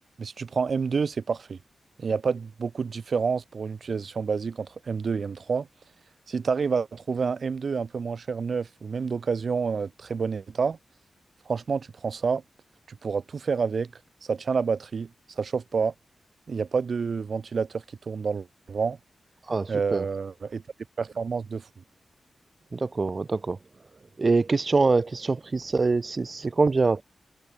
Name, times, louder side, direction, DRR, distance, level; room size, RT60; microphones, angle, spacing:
voice 1, 0.2-1.6 2.0-5.7 6.3-10.8 11.5-12.4 12.9-13.9 14.2-15.1 15.4-15.9 16.5-19.0 19.7-20.6 21.0-21.7, right 5 dB, 55° right, 1.3 m, -28 dB
voice 2, 19.4-20.0 22.7-23.6 24.2-27.0, right 3 dB, 35° right, 0.5 m, -24 dB
wide cardioid pair, 135°, 0 cm